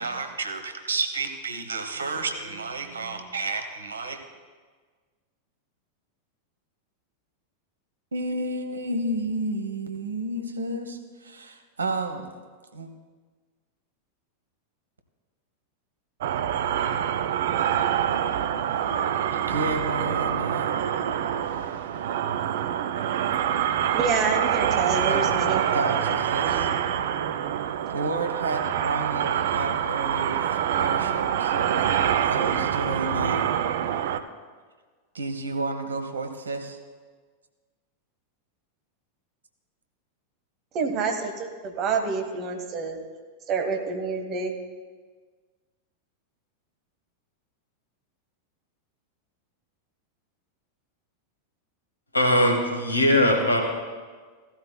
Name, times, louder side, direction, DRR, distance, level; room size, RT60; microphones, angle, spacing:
voice 1, 0.0-4.2 8.1-12.3 12.7-12.9 19.3-20.7 25.1-25.3 25.7-26.7 27.9-33.4 35.1-36.8, right 2 dB, 75° right, 6 dB, 1.0 m, -31 dB
sound 1, 16.2-34.2, right 9 dB, 55° right, 0.5 m, -26 dB
voice 2, 23.9-26.1 26.4-26.7 40.7-43.0 43.5-44.5, right 4 dB, 35° right, 5 dB, 1.4 m, -28 dB
voice 3, 52.1-53.6, left 1 dB, 80° left, 3 dB, 1.5 m, -20 dB
16.0 x 12.5 x 2.3 m, 1.5 s
figure-of-eight pair, 90°, 0 cm